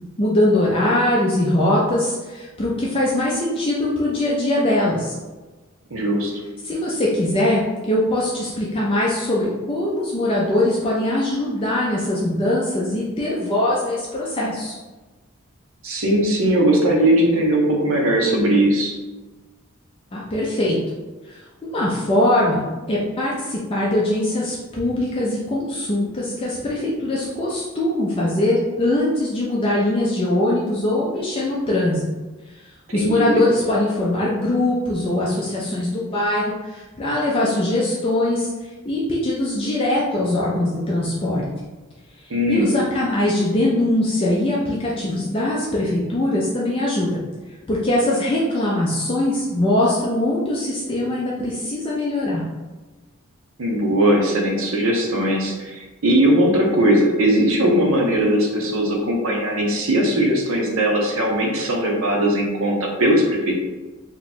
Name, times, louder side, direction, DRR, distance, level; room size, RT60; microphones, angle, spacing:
voice 1, 0.2-5.2 6.6-14.7 20.1-20.8 21.3-21.4 21.7-32.1 32.9-38.5 38.8-41.4 42.5-47.2 47.7-52.4, left 1 dB, 25° left, -6 dB, 0.4 m, -21 dB
voice 2, 5.9-6.3 15.8-19.0 32.9-33.4 42.3-42.7 53.6-63.5, right 1 dB, 70° right, 0 dB, 0.7 m, -19 dB
2.9 x 2.3 x 4.1 m, 1.2 s
head